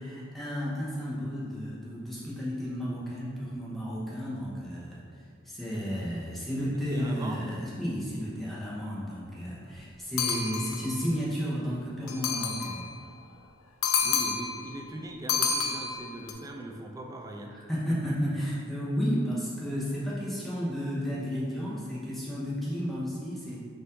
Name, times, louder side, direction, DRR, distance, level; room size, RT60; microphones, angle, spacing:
voice 1, 0.0-5.0 5.4-12.9 17.5-23.6, equal, ahead, -8 dB, 0.8 m, -32 dB
voice 2, 6.7-7.4 14.0-17.6, right 1 dB, 15° right, 2 dB, 0.3 m, -40 dB
sound 1, 10.2-10.9 12.1-12.8 13.8-14.6 15.3-16.3, left 5 dB, 75° left, 0.5 m, -29 dB
4.3 x 2.6 x 3.8 m, 2.2 s
head